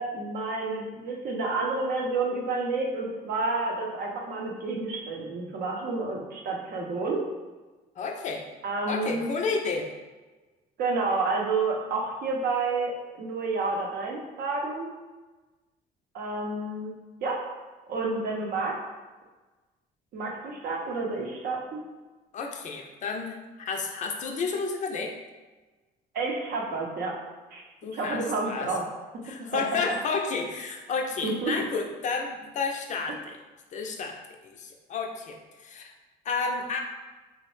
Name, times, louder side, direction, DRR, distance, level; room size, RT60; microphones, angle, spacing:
voice 1, 0.0-7.3 8.6-9.3 10.8-14.9 16.1-16.9 17.2-17.5 17.9-18.8 20.1-21.8 26.1-27.2 27.5-27.7 27.9-28.8 29.5-29.6 31.2-31.5, right 3 dB, 65° right, 0 dB, 0.6 m, -30 dB
voice 2, 8.0-8.5 8.9-9.9 22.3-23.4 23.7-25.1 27.8-28.7 29.2-33.4 33.7-34.2 34.4-35.9 36.3-36.8, left 4 dB, 45° left, 2 dB, 0.4 m, -31 dB
2.9 x 2.1 x 3.1 m, 1.2 s
cardioid pair, 110°, 17 cm